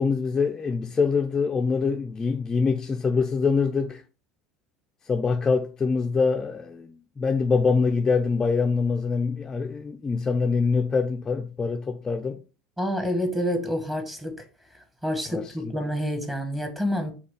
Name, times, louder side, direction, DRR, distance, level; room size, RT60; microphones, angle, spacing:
voice 1, 0.0-4.0 5.1-12.4 15.3-15.7, left 4 dB, 25° left, 0.3 m, -24 dB
voice 2, 12.8-14.4 15.0-17.1, equal, 10° right, 0.9 m, -28 dB
4.2 x 2.3 x 3.3 m
hypercardioid pair, 80°, 2 cm